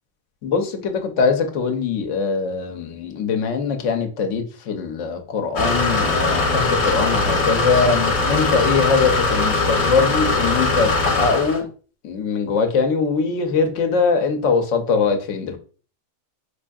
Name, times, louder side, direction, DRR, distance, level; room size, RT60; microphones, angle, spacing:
voice 1, 0.4-11.7 12.0-15.6, left 5 dB, 90° left, 1.0 m, -22 dB
sound 1, 5.6-11.6, left 3 dB, 65° left, 1.1 m, -20 dB
4.7 x 2.6 x 2.3 m
omnidirectional pair, 1.2 m